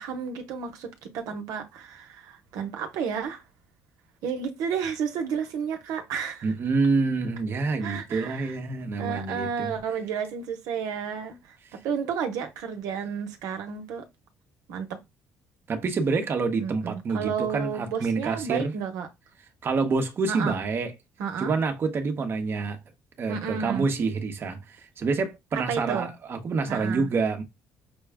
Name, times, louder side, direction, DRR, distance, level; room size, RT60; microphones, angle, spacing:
voice 1, 0.0-3.4 4.2-6.5 7.8-8.5 9.0-11.6 11.8-14.1 14.7-15.0 16.6-19.1 20.3-20.6 21.2-21.5 23.3-23.9 25.7-26.1 26.7-27.1, right 7 dB, 85° right, 1.0 m, -31 dB
voice 2, 6.4-9.8 15.7-18.7 19.6-20.9 21.4-22.8 23.2-27.4, right 4 dB, 40° right, 0.9 m, -27 dB
6.0 x 2.3 x 3.4 m
cardioid pair, 115°, 6 cm